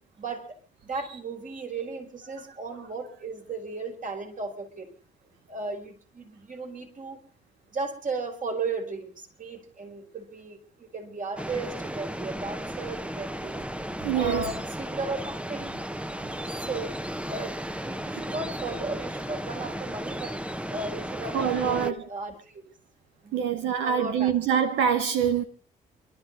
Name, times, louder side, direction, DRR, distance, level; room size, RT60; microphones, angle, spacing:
voice 1, 0.2-0.6 0.8-4.9 5.5-7.2 7.7-13.7 14.1-15.7 16.6-17.0 17.3-20.4 20.7-22.6 23.2-23.5 23.8-24.3, right 3 dB, 45° right, 4.8 m, -35 dB
sound 1, 11.4-21.9, right 1 dB, 5° right, 1.1 m, -35 dB
voice 2, 14.0-14.4 21.3-21.9 23.3-25.4, right 8 dB, 75° right, 1.2 m, -25 dB
28.5 x 12.5 x 4.0 m
hypercardioid pair, 50°, 19 cm